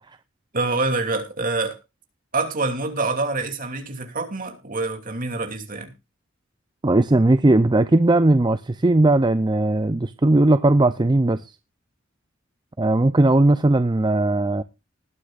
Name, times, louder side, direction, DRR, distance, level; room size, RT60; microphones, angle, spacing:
voice 1, 0.5-1.8 2.3-5.9, right 3 dB, 45° right, 2.7 m, -26 dB
voice 2, 6.8-11.4 12.8-14.6, right 2 dB, 20° right, 0.5 m, -18 dB
19.5 x 9.8 x 2.5 m
head